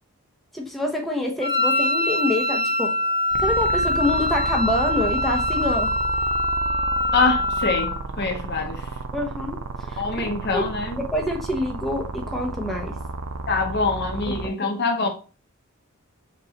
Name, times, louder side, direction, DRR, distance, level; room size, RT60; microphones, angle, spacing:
voice 1, 0.5-3.0 3.4-5.9 9.1-10.2 10.5-10.6 11.0-12.9 14.3-14.4, left 1 dB, ahead, 0.8 m, -26 dB
Wind instrument woodwind instrument, 1.4-8.0, left 1 dB, 25° left, 1.1 m, -23 dB
sound 1, 3.3-14.5, right 3 dB, 90° right, 0.5 m, -32 dB
voice 2, 7.1-9.0 10.0-11.0 13.5-15.1, left 3 dB, 55° left, 0.8 m, -24 dB
5.3 x 3.1 x 2.8 m
head